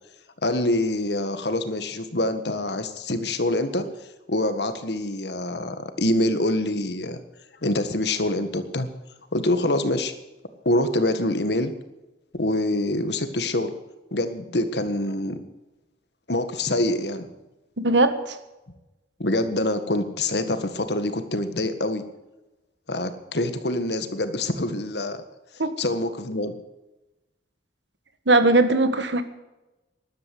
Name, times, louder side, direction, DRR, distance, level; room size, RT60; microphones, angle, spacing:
voice 1, 0.4-3.9 4.3-7.2 7.6-8.9 9.3-10.1 10.7-11.7 12.3-13.7 14.1-15.4 16.3-17.3 19.2-22.0 22.9-25.2 25.8-26.5, left 1 dB, 70° left, 9 dB, 1.7 m, -25 dB
voice 2, 17.8-18.4 25.6-25.7 28.3-29.2, right 2 dB, 90° right, 10 dB, 1.6 m, -19 dB
13.0 x 11.5 x 7.8 m, 1.0 s
head